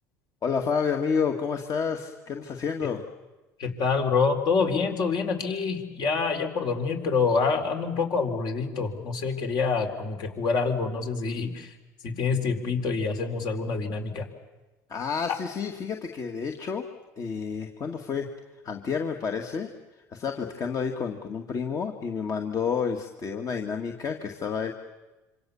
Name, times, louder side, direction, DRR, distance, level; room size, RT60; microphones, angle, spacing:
voice 1, 0.4-3.0 14.9-16.9 17.2-18.3 18.6-19.7 20.1-24.7, left 6 dB, 40° left, 4 dB, 2.1 m, -30 dB
voice 2, 3.6-11.7 12.0-14.3, left 4 dB, 55° left, 4 dB, 4.5 m, -26 dB
26.5 x 25.5 x 7.2 m, 1.1 s
hypercardioid pair, 85°, 9 cm